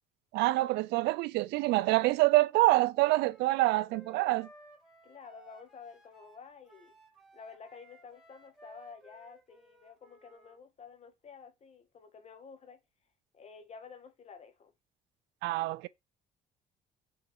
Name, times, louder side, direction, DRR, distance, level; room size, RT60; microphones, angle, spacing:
voice 1, 0.3-4.5 15.4-15.9, right 19 dB, 85° right, 0.5 m, -26 dB
Wind instrument woodwind instrument, 3.0-10.6, right 2 dB, 5° right, 3.0 m, -58 dB
voice 2, 5.0-6.9 7.3-12.8 13.3-14.7, left 5 dB, 40° left, 1.7 m, -51 dB
6.2 x 3.9 x 4.7 m
cardioid pair, 110°, 17 cm